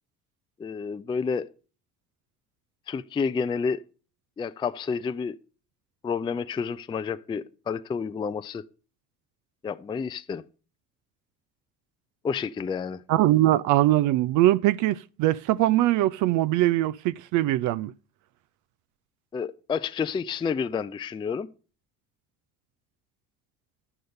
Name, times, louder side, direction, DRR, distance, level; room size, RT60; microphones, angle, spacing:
voice 1, 0.6-1.5 2.9-3.8 4.4-5.4 6.0-8.6 9.6-10.4 12.2-13.0 19.3-21.5, left 5 dB, 10° left, 0.4 m, -30 dB
voice 2, 13.1-17.9, right 15 dB, 40° right, 0.5 m, -22 dB
12.0 x 7.7 x 5.3 m
figure-of-eight pair, 60°, 47 cm